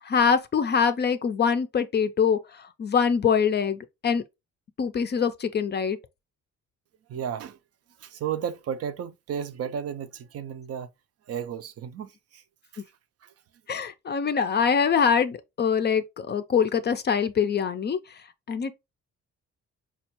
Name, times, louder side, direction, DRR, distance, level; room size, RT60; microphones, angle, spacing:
voice 1, 0.0-4.2 4.8-6.0 13.7-18.7, left 6 dB, 35° left, 0.4 m, -24 dB
voice 2, 7.1-7.6 8.0-10.9 11.3-12.4 12.7-12.8 13.2-13.3, right 8 dB, 55° right, 0.5 m, -33 dB
4.3 x 2.3 x 2.9 m
cardioid pair, 90°, 30 cm